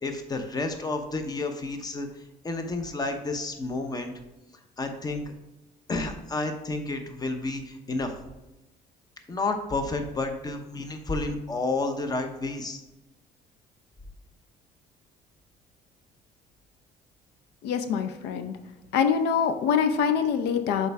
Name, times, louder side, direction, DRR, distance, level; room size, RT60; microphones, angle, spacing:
voice 1, 0.0-2.1 2.4-4.1 4.8-5.3 5.9-8.1 9.3-12.8, left 3 dB, 25° left, 6 dB, 0.8 m, -30 dB
voice 2, 17.6-18.6 18.9-20.9, left 7 dB, 85° left, 9 dB, 0.5 m, -24 dB
6.5 x 4.6 x 3.4 m, 1.0 s
cardioid pair, 110°, 17 cm